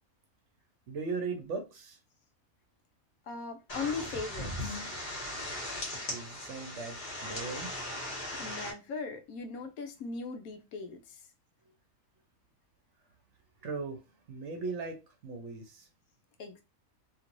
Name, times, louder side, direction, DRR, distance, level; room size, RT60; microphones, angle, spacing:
voice 1, 0.9-2.0 6.1-8.0 13.6-14.0 14.3-15.9, right 4 dB, 60° right, 1.0 m, -38 dB
voice 2, 3.3-4.8 8.4-11.2 16.4-16.6, left 4 dB, 80° left, 1.1 m, -39 dB
sound 1, 3.7-8.7, left 1 dB, 35° left, 1.3 m, -38 dB
3.1 x 2.9 x 2.5 m
omnidirectional pair, 1.5 m